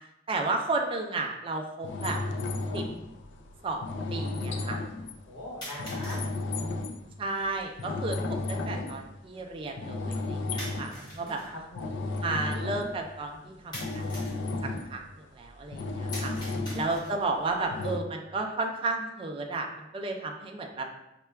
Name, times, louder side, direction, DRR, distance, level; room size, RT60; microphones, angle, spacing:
voice 1, 0.3-2.2 2.7-2.8 3.6-3.8 4.1-4.8 7.2-11.4 12.2-14.2 14.6-15.0 15.3-16.3 16.7-20.9, right 3 dB, 30° right, 2 dB, 0.3 m, -33 dB
sound 1, 1.2-1.3 2.3-2.4 5.6-6.3 10.6-11.5 13.7-14.4 16.1-17.3, equal, 25° left, 1.1 m, -43 dB
sound 2, 1.8-7.1 7.5-9.5 9.8-11.0 11.4-15.0 15.5-17.0 17.7-18.0, left 2 dB, 65° left, 0.3 m, -33 dB
voice 2, 5.3-6.3 10.8-12.1 16.3-17.2, left 1 dB, 80° left, -6 dB, 1.2 m, -43 dB
5.4 x 2.2 x 2.2 m, 0.87 s
head